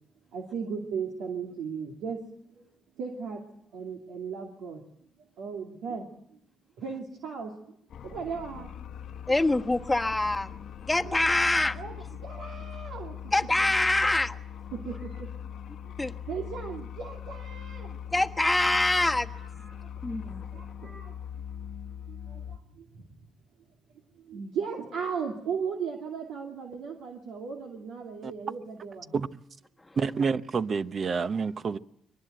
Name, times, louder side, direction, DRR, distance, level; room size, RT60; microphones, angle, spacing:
voice 1, 0.3-2.2 2.5-2.7 3.0-3.4 3.7-4.8 5.4-6.4 6.8-7.5 8.0-8.7 11.0-11.1 11.8-11.9 12.2-13.3 14.7-15.3 15.8-15.9 16.3-18.0 19.7-19.9 20.5-21.4 22.1-23.0 24.2-29.1, right 6 dB, 85° right, 2.5 m, -36 dB
sound 1, 7.9-22.6, left 9 dB, 70° left, 1.0 m, -41 dB
voice 2, 9.3-10.5 10.8-11.8 13.3-14.4 16.0-16.1 18.1-19.3 20.0-20.4 29.8-30.0, left 2 dB, 15° left, 1.2 m, -25 dB
voice 3, 30.0-31.8, right 5 dB, 45° right, 0.9 m, -28 dB
22.5 x 19.5 x 8.0 m
cardioid pair, 90°, 0 cm